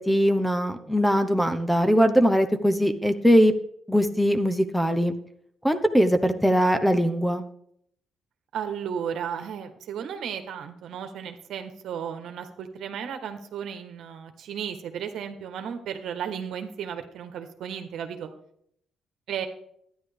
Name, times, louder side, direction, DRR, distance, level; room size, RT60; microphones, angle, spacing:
voice 1, 0.0-3.5 3.9-5.1 5.6-7.4, equal, ahead, 9 dB, 0.9 m, -21 dB
voice 2, 8.5-18.3 19.3-19.5, right 8 dB, 75° right, 7 dB, 1.3 m, -34 dB
12.0 x 10.0 x 3.4 m, 0.69 s
cardioid pair, 90°, 0 cm